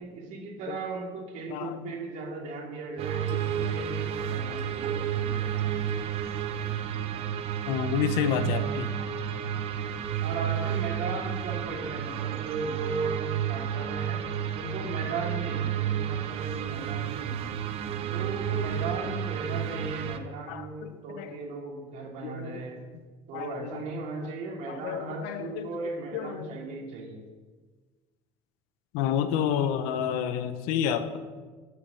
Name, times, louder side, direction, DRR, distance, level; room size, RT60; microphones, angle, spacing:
voice 1, 0.0-5.7 10.2-14.3 14.5-17.5 18.1-22.9 23.3-27.2, right 3 dB, 60° right, 0 dB, 2.7 m, -37 dB
voice 2, 1.5-1.9 3.6-3.9 7.7-8.9 20.5-20.9 21.2-21.3 22.2-22.6 23.3-23.8 24.7-25.7 26.1-26.5 28.9-31.2, left 9 dB, 85° left, 10 dB, 1.0 m, -30 dB
sound 1, 3.0-20.2, right 9 dB, 45° right, 0.8 m, -31 dB
8.2 x 7.9 x 7.5 m, 1.4 s
cardioid pair, 150°, 14 cm